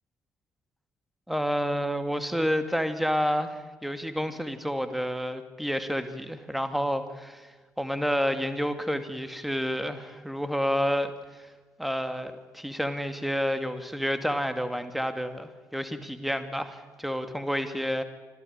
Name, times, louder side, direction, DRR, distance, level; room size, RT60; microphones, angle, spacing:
voice 1, 1.3-11.5 11.8-18.0, equal, ahead, 9 dB, 2.3 m, -29 dB
25.5 x 15.5 x 8.9 m, 1.3 s
figure-of-eight pair, 40°, 9 cm